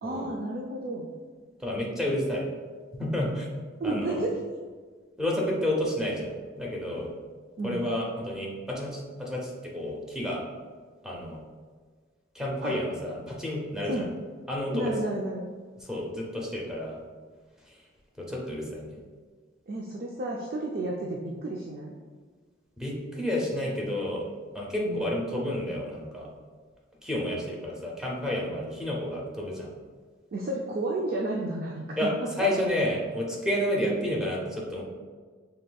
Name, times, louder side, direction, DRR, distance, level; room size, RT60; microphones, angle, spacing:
voice 1, 0.0-1.1 3.8-4.4 7.6-7.8 12.6-12.7 13.8-14.1 14.7-15.5 19.7-21.9 24.9-25.1 30.3-32.1 32.4-32.5, right 2 dB, 50° right, -1 dB, 0.4 m, -31 dB
voice 2, 1.6-2.4 2.9-3.5 3.8-4.2 5.2-7.1 7.6-10.4 11.0-11.4 12.3-14.0 14.5-14.9 15.8-17.0 17.7-17.8 18.2-19.0 22.8-24.2 24.5-26.3 27.0-29.7 32.0-32.1 32.4-34.8, left 1 dB, 5° right, -3 dB, 0.7 m, -30 dB
5.1 x 3.4 x 2.3 m, 1.5 s
head